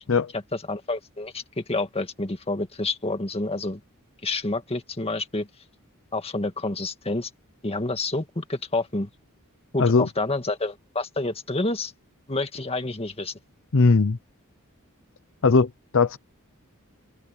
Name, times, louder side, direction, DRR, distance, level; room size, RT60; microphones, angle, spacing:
voice 1, 0.7-3.8 4.2-5.5 6.1-7.3 7.6-9.1 9.7-11.9 12.3-13.3, left 2 dB, 25° left, 1.9 m, -28 dB
voice 2, 13.7-14.2 15.4-16.2, left 4 dB, 60° left, 0.8 m, -19 dB
open air
head